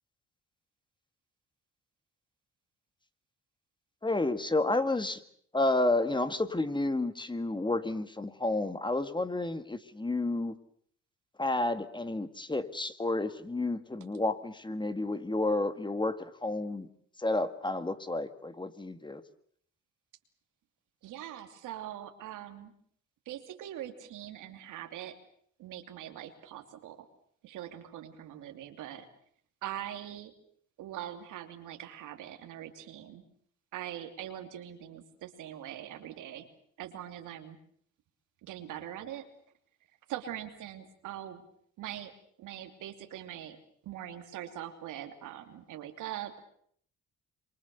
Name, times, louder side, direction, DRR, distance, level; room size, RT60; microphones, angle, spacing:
voice 1, 4.0-5.2 5.5-10.5 11.4-16.9 17.2-19.2, left 2 dB, 15° left, 11 dB, 1.8 m, -31 dB
voice 2, 21.0-22.7 23.3-25.1 25.6-27.1 27.4-29.1 29.6-30.3 30.8-33.2 33.7-36.5 36.8-37.6 38.4-39.2 40.1-41.4 41.8-42.1 42.4-46.5, right 11 dB, 90° right, 6 dB, 2.9 m, -42 dB
27.5 x 23.0 x 6.9 m, 0.63 s
cardioid pair, 90°, 30 cm